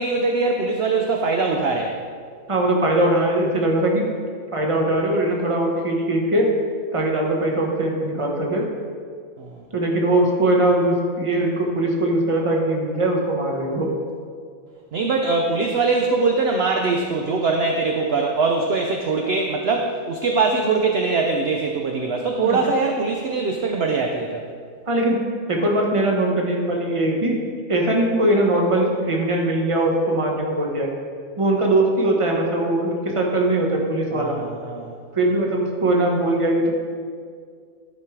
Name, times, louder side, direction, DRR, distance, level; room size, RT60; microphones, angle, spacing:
voice 1, 0.0-1.9 9.4-9.6 14.9-24.5 34.1-34.9, right 3 dB, 55° right, 2 dB, 0.8 m, -22 dB
voice 2, 2.5-4.1 4.5-6.5 6.9-8.7 9.7-13.9 22.4-22.6 24.9-27.4 27.7-30.9 31.4-34.4 35.1-36.7, right 1 dB, 25° right, 0 dB, 1.1 m, -21 dB
12.0 x 5.3 x 4.7 m, 2.1 s
omnidirectional pair, 1.5 m